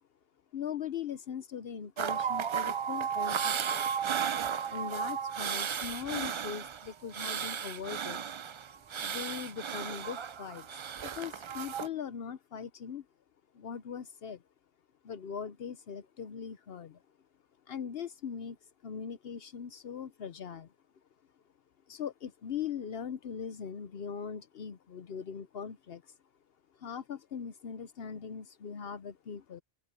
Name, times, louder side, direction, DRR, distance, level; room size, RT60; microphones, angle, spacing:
voice 1, 0.5-3.8 4.7-8.2 9.0-13.1 13.5-14.4 15.0-17.0 17.7-20.7 21.9-26.2 26.7-29.6, left 7 dB, 70° left, 1.0 m, -40 dB
sound 1, 2.0-11.9, right 7 dB, 55° right, 0.3 m, -34 dB
open air
omnidirectional pair, 1.1 m